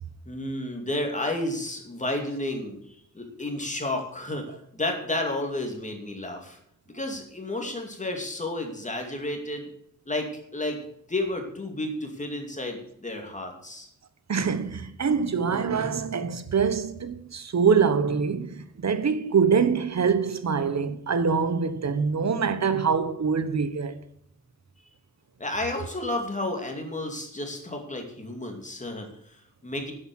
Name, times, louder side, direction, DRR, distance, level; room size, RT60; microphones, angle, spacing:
voice 1, 0.3-6.6 6.9-9.7 10.1-10.8 11.1-13.9 25.4-29.9, left 1 dB, 20° left, 2.4 m, -32 dB
voice 2, 14.3-24.0, right 6 dB, 55° right, 1.1 m, -24 dB
10.5 x 7.8 x 7.8 m
wide cardioid pair, 160°, 33 cm